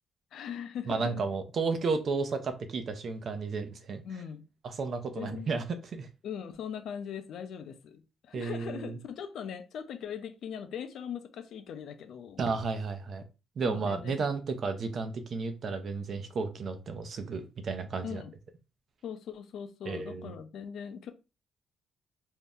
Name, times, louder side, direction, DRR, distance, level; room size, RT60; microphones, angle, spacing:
voice 1, 0.3-1.2 4.0-4.5 5.1-5.5 6.2-12.4 13.6-14.3 18.0-18.3 19.0-21.1, left 8 dB, 70° left, 0.5 m, -40 dB
voice 2, 0.9-4.0 4.6-5.6 5.9-6.1 8.3-9.0 12.4-13.2 13.6-18.2 19.9-20.3, right 4 dB, 55° right, 0.6 m, -33 dB
2.7 x 2.1 x 3.5 m
cardioid pair, 90°, 0 cm